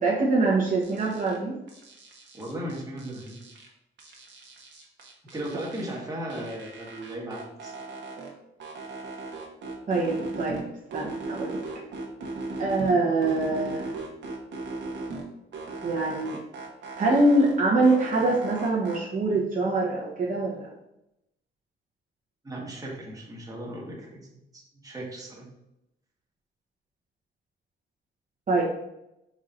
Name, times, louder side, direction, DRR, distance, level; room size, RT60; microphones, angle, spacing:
voice 1, 0.0-1.5 9.9-10.6 10.9-11.6 12.6-13.9 15.8-16.4 17.0-20.7 28.5-28.6, right 2 dB, 40° right, -5 dB, 1.1 m, -24 dB
sound 1, 0.8-1.4 1.7-3.7 4.0-6.0 6.3-8.3 8.6-10.6 10.9-12.9 13.2-15.2 15.5-17.5 17.8-19.0, right 3 dB, 65° right, 1.1 m, -37 dB
voice 2, 2.3-3.4 5.3-7.7 22.4-24.3 24.5-25.5, right 1 dB, 20° right, -3 dB, 1.4 m, -36 dB
4.8 x 4.3 x 2.5 m, 0.86 s
cardioid pair, 90°, 20 cm